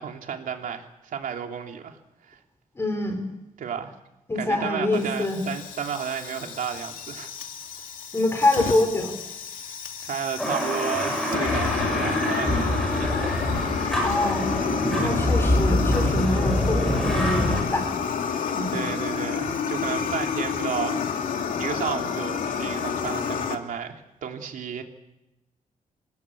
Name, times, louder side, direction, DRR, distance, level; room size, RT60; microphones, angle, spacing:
voice 1, 0.0-2.0 2.2-2.4 3.6-3.9 4.3-7.3 10.0-13.2 15.0-15.2 18.7-21.1 21.3-24.8, right 7 dB, 80° right, 3 dB, 3.2 m, -32 dB
voice 2, 2.8-3.2 4.3-5.4 8.1-9.2 14.0-14.5 15.0-17.9 18.5-18.8, left 2 dB, 20° left, 6 dB, 4.2 m, -25 dB
Fire, 4.9-23.5, left 6 dB, 80° left, 2.7 m, -30 dB
sound 1, 10.4-17.6, left 1 dB, 5° left, 7.9 m, -25 dB
27.5 x 19.0 x 8.6 m, 0.94 s
wide cardioid pair, 170°, 14 cm